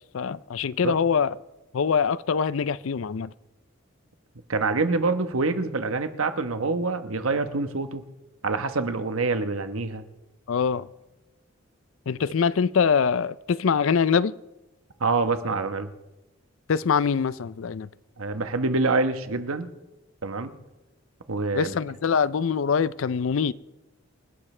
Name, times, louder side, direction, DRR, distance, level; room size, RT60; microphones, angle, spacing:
voice 1, 0.1-1.3 1.7-3.3 10.5-10.9 12.1-14.3 16.7-17.9 21.5-23.5, left 6 dB, 75° left, 0.4 m, -24 dB
voice 2, 4.5-8.0 8.4-10.0 15.0-15.9 18.2-19.7 20.2-20.5 21.3-21.7, right 3 dB, 85° right, 1.1 m, -26 dB
27.0 x 12.0 x 3.3 m
head